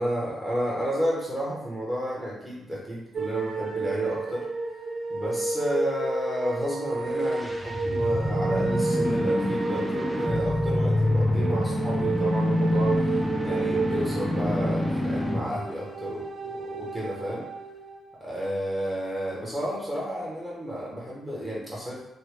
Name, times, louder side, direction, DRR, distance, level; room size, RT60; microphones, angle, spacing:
voice 1, 0.0-4.5 5.1-12.9 13.4-17.5 18.2-22.0, equal, 5° right, -5 dB, 0.9 m, -32 dB
sound 1, 3.1-18.3, right 3 dB, 50° right, 0.5 m, -31 dB
sound 2, 7.0-15.6, left 1 dB, 10° left, 0.5 m, -27 dB
3.0 x 2.2 x 3.2 m, 0.88 s
cardioid pair, 85°, 0 cm